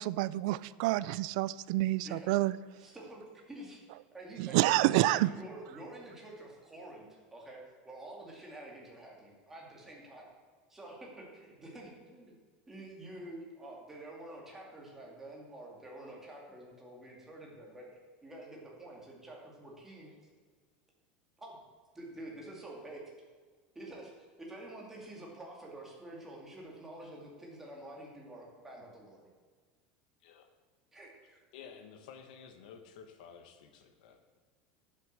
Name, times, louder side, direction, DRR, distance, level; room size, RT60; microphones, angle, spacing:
voice 1, 0.0-2.6 4.4-5.3, right 17 dB, 60° right, 18 dB, 0.3 m, -28 dB
voice 2, 2.0-2.4 2.8-3.8 4.1-10.3 10.7-12.3 12.7-17.9 18.2-20.1 21.4-21.6 21.9-23.0 23.7-24.1 24.4-29.2 30.9-31.4, right 1 dB, 10° right, -3 dB, 2.3 m, -48 dB
voice 3, 31.5-34.2, left 7 dB, 75° left, 7 dB, 1.5 m, -52 dB
10.5 x 7.6 x 6.5 m, 1.5 s
supercardioid pair, 175°, 4 cm